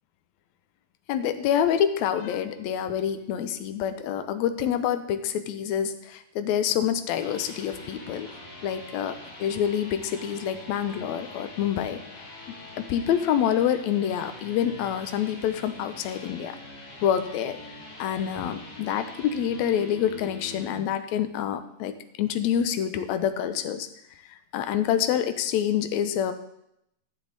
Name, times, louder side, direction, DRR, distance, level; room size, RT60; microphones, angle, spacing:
voice 1, 1.1-8.3 8.6-12.0 12.8-16.6 17.0-17.6 18.0-23.9 24.3-26.3, left 9 dB, 80° left, 9 dB, 1.9 m, -27 dB
sound 1, 7.0-20.8, left 2 dB, 30° left, 2.7 m, -44 dB
12.0 x 7.2 x 3.9 m, 0.77 s
omnidirectional pair, 3.5 m